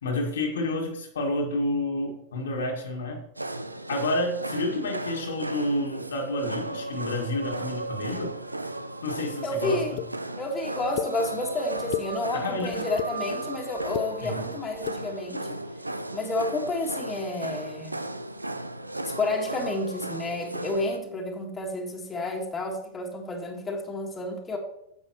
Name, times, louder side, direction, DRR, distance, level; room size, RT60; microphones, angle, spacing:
voice 1, 0.0-3.2 3.9-8.4 9.0-9.8 12.3-12.8 14.2-14.4, left 1 dB, 65° left, 1 dB, 1.7 m, -29 dB
sound 1, 3.4-21.0, right 2 dB, 85° right, 0.4 m, -35 dB
voice 2, 9.4-9.9 10.3-15.6 16.1-18.0 19.0-24.6, left 2 dB, 15° left, 1 dB, 1.6 m, -30 dB
sound 2, 10.0-10.1 11.0-11.1 11.7-12.1 12.7-13.1 13.8-14.1 14.7-15.0, left 15 dB, 45° left, 0.5 m, -31 dB
9.8 x 7.8 x 3.0 m, 0.80 s
figure-of-eight pair, 90°, 0 cm